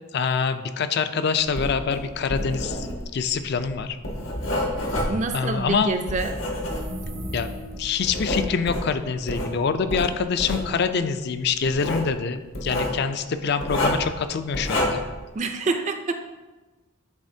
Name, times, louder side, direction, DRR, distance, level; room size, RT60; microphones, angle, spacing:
voice 1, 0.1-2.9 3.1-4.0 5.3-6.0 7.3-7.5 7.8-15.0, left 5 dB, 50° left, 10 dB, 0.4 m, -25 dB
Writing, 1.4-7.2 7.7-9.5 9.9-10.7 11.6-12.1 12.5-13.0 13.6-14.1 14.5-15.1, left 1 dB, 75° left, 1.3 m, -28 dB
voice 2, 5.1-6.4 15.3-16.2, right 3 dB, 35° right, 7 dB, 0.4 m, -26 dB
sound 1, 6.5-8.1, equal, 90° right, 1.6 m, -36 dB
10.5 x 4.3 x 2.7 m, 1.2 s
head